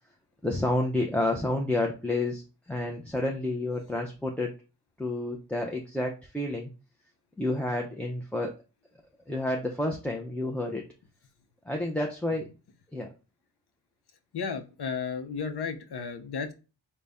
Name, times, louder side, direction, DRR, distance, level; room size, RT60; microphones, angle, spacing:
voice 1, 0.4-4.5 5.0-6.7 7.4-8.5 9.3-10.8 11.6-12.5 12.9-13.1, left 2 dB, 5° left, 1 dB, 0.4 m, -30 dB
voice 2, 14.3-16.5, left 5 dB, 65° left, 7 dB, 0.7 m, -33 dB
3.9 x 2.2 x 3.5 m, 0.32 s
wide cardioid pair, 80°, 42 cm